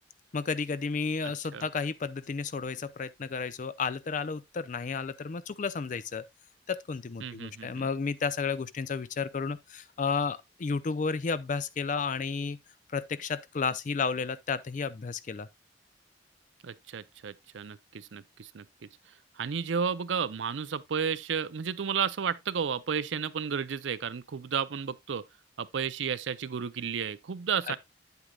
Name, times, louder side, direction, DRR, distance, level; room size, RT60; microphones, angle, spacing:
voice 1, 0.3-6.2 6.7-12.6 12.9-15.5 27.7-27.8, left 5 dB, 45° left, 0.4 m, -32 dB
voice 2, 1.2-1.7 7.2-7.9 16.6-18.7 19.4-25.2 25.6-27.8, right 7 dB, 80° right, 0.5 m, -32 dB
8.7 x 8.1 x 2.3 m
head